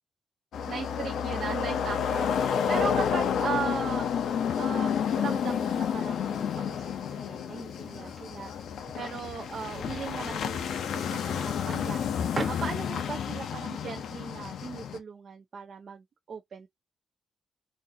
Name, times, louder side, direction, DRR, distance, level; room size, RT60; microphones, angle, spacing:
sound 1, 0.5-15.0, left 8 dB, 80° left, 0.6 m, -30 dB
voice 1, 0.7-4.1 4.6-4.9 5.2-16.7, right 6 dB, 50° right, 0.6 m, -38 dB
sound 2, 7.8-13.2, right 2 dB, 25° right, 1.1 m, -42 dB
4.1 x 2.6 x 2.7 m
wide cardioid pair, 175°, 0 cm